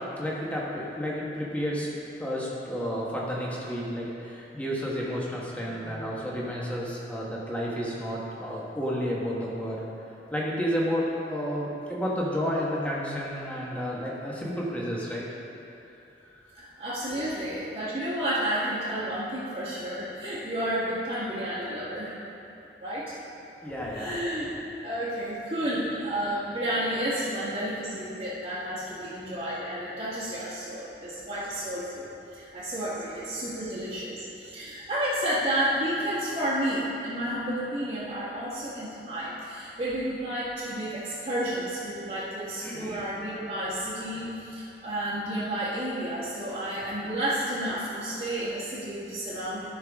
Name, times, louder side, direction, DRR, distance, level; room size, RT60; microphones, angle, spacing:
voice 1, 0.2-9.8 10.3-15.3 23.6-24.2 42.6-43.1 45.7-46.8 47.9-48.0, equal, 10° left, -5 dB, 1.3 m, -31 dB
voice 2, 16.5-22.1 22.8-23.1 23.9-24.5 24.8-49.8, right 1 dB, 35° right, -13 dB, 1.6 m, -31 dB
13.5 x 5.8 x 3.6 m, 2.8 s
head